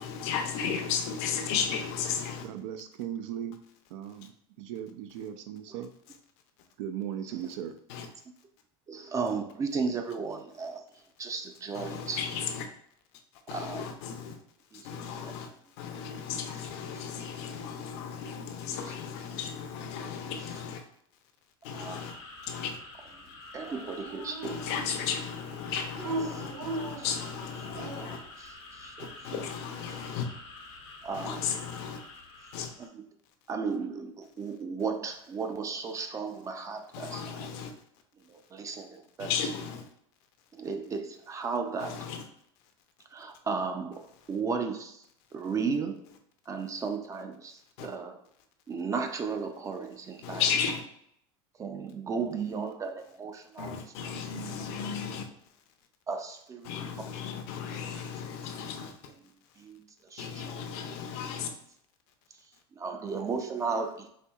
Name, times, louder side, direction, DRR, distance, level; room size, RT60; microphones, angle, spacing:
voice 1, 0.0-2.4 7.9-8.1 11.7-12.7 13.5-14.4 14.7-15.5 15.8-20.8 21.6-22.1 22.5-22.8 24.4-28.2 29.0-30.3 31.1-32.0 32.5-32.7 36.9-37.7 39.2-39.8 41.8-42.2 47.8-47.9 50.2-50.8 53.6-55.2 56.6-58.9 60.2-61.5, left 7 dB, 70° left, 0.6 m, -34 dB
voice 2, 2.4-3.6 3.9-4.3 4.6-5.9 6.8-7.8, right 10 dB, 80° right, 0.4 m, -37 dB
voice 3, 8.9-12.2 13.5-13.9 14.7-15.3 16.0-16.2 19.3-19.4 21.7-22.0 23.2-24.6 26.3-26.4 27.0-27.1 27.7-27.8 28.1-29.4 31.0-31.4 32.8-33.0 33.5-37.5 38.3-39.5 40.5-42.0 43.1-45.0 45.3-46.1 46.5-48.2 48.7-50.4 51.6-53.8 54.1-54.3 56.1-57.1 57.5-57.6 59.2-59.3 59.6-61.0 62.7-64.1, right 5 dB, 20° right, 0.4 m, -35 dB
sound 1, 21.7-32.9, left 2 dB, 90° left, 1.0 m, -48 dB
Dog, 23.6-25.1 25.9-28.3, right 2 dB, 60° right, 1.0 m, -38 dB
4.3 x 2.7 x 2.3 m
supercardioid pair, 135°, 15 cm